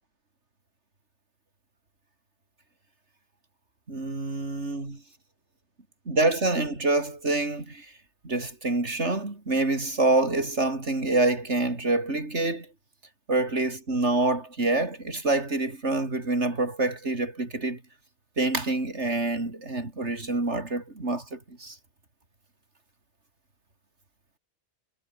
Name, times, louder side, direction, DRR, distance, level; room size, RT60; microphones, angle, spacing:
voice 1, 3.9-5.0 6.1-7.9 8.2-12.7 13.3-17.8 18.4-21.8, right 2 dB, 75° right, 4.6 m, -26 dB
omnidirectional pair, 1.2 m